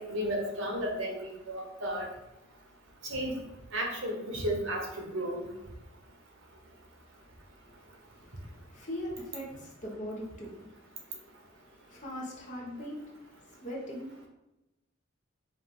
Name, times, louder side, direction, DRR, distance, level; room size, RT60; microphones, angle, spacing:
voice 1, 0.0-2.1 3.1-3.3 3.7-5.5, equal, 75° right, 0 dB, 1.1 m, -33 dB
voice 2, 8.7-10.7 11.9-13.0 13.6-14.1, equal, 40° left, -3 dB, 1.1 m, -39 dB
4.8 x 2.7 x 3.7 m, 0.92 s
head